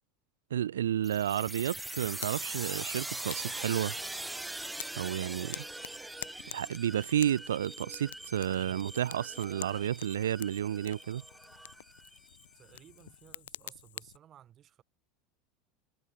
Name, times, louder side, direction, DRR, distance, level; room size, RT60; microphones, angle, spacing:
voice 1, 0.5-4.0 5.0-5.6 6.5-11.2, right 10 dB, 85° right, 0.5 m, -31 dB
sound 1, 1.0-12.4, right 2 dB, 10° right, 0.4 m, -42 dB
Fire, 1.7-14.2, left 12 dB, 80° left, 1.7 m, -49 dB
voice 2, 12.5-14.8, right 10 dB, 40° right, 7.1 m, -57 dB
hypercardioid pair, 85°, 0 cm